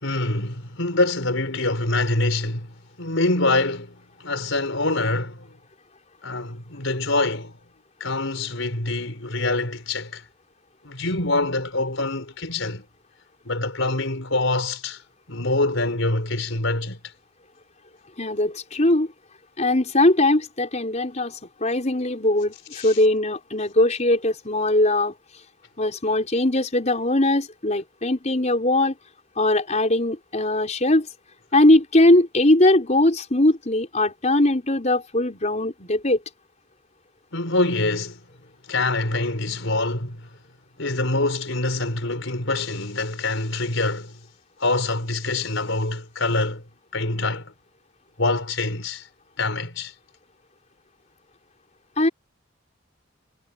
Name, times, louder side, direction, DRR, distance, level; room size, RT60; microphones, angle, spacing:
voice 1, 0.0-2.7 3.0-5.6 6.2-7.6 8.0-10.2 10.8-12.8 13.4-15.0 15.3-17.0 22.7-23.0 37.3-38.2 38.7-40.3 40.8-44.2 44.6-46.6 46.9-47.5 48.2-49.1 49.4-49.9, left 2 dB, 80° left, 4.5 m, -25 dB
voice 2, 18.2-19.1 19.6-25.1 25.8-28.9 29.4-31.1 31.5-36.2 52.0-52.1, left 1 dB, 35° left, 5.0 m, -20 dB
head